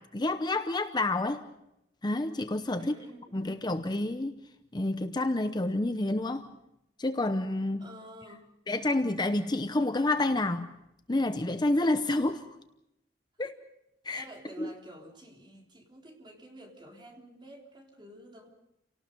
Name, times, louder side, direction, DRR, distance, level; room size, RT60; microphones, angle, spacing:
voice 1, 0.0-1.4 2.0-2.9 3.3-4.4 4.7-6.5 7.0-7.9 8.7-10.7 11.1-12.5 13.4-13.6 14.0-14.2 14.6-14.7, left 2 dB, 25° left, 9 dB, 0.8 m, -29 dB
voice 2, 2.8-3.5 7.8-8.5 14.1-18.5, right 1 dB, 25° right, 0 dB, 3.7 m, -49 dB
29.5 x 18.5 x 5.3 m, 0.85 s
head